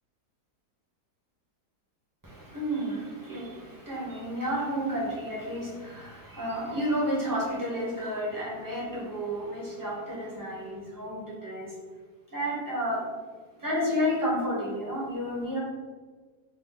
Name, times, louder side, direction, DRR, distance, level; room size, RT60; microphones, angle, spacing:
voice 1, 2.2-11.8 12.3-13.0 13.6-15.6, equal, 15° right, -7 dB, 1.0 m, -31 dB
4.0 x 2.2 x 3.9 m, 1.4 s
omnidirectional pair, 1.7 m